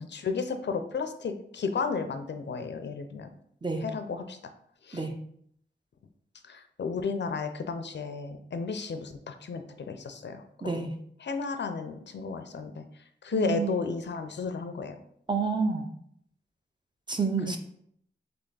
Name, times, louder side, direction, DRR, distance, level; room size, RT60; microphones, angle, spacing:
voice 1, 0.0-3.3 3.8-4.4 4.8-5.1 6.5-10.8 11.2-12.8 13.2-15.0 17.5-17.6, left 5 dB, 65° left, 7 dB, 0.5 m, -33 dB
voice 2, 13.3-13.7 15.3-15.9 17.1-17.6, right 4 dB, 25° right, 5 dB, 0.6 m, -29 dB
3.4 x 3.3 x 3.9 m, 0.68 s
wide cardioid pair, 75°, 19 cm